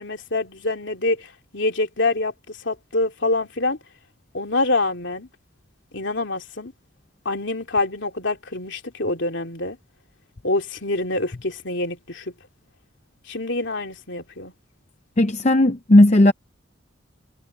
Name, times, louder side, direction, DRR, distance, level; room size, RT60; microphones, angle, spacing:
voice 1, 0.0-3.8 4.3-5.3 5.9-6.7 7.2-9.8 10.4-12.3 13.3-14.5, left 2 dB, 65° left, 3.0 m, -26 dB
voice 2, 15.2-16.3, left 1 dB, 35° left, 0.7 m, -15 dB
head